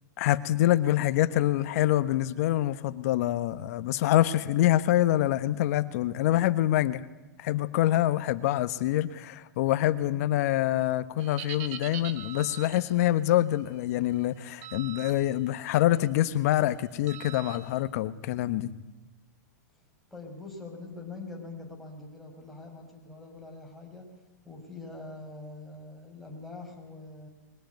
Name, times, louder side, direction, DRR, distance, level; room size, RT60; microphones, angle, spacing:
voice 1, 0.2-7.0 7.4-18.8, left 14 dB, 55° left, 14 dB, 1.3 m, -26 dB
sound 1, 11.2-12.9 14.6-15.1 15.6-15.8 17.1-17.6, right 10 dB, 50° right, 2.5 m, -41 dB
voice 2, 20.1-24.1 24.4-27.3, left 3 dB, ahead, -2 dB, 5.6 m, -43 dB
22.5 x 17.5 x 9.5 m, 1.1 s
hypercardioid pair, 130°, 10 cm